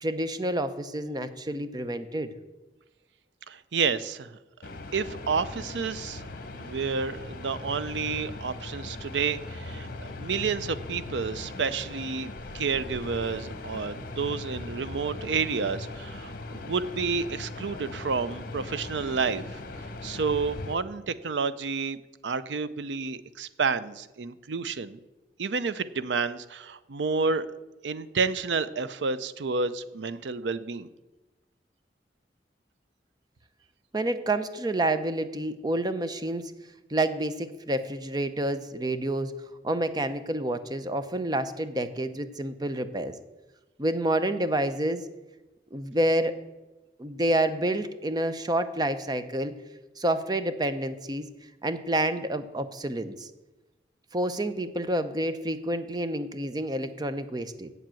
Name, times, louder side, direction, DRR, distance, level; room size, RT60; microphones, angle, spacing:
voice 1, 0.0-2.3 33.9-36.5 36.9-39.3 39.6-43.2 43.8-45.0 45.7-46.3 47.0-49.5 50.0-51.3 51.6-53.3 54.1-57.7, right 1 dB, 25° right, 11 dB, 0.6 m, -28 dB
voice 2, 3.5-4.4 4.9-6.3 6.6-12.3 12.5-19.6 20.0-22.0 22.2-25.0 25.4-27.5 27.8-30.9, right 5 dB, 90° right, 15 dB, 0.6 m, -30 dB
sound 1, 4.6-20.7, left 2 dB, 55° left, 1.0 m, -39 dB
8.1 x 7.5 x 7.6 m, 1.1 s
head